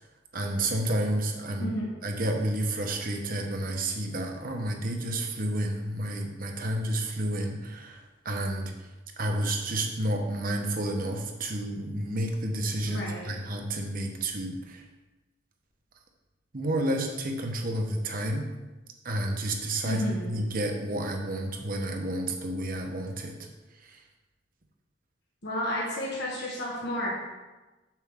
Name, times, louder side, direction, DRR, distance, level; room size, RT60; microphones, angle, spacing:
voice 1, 0.3-1.7 2.0-8.7 9.2-14.8 16.5-18.5 19.0-23.4, right 1 dB, 45° right, 3 dB, 1.0 m, -30 dB
voice 2, 1.6-2.0 12.9-13.3 19.8-20.4 25.4-27.3, equal, 60° left, -4 dB, 1.5 m, -32 dB
7.5 x 7.2 x 3.7 m, 1.1 s
head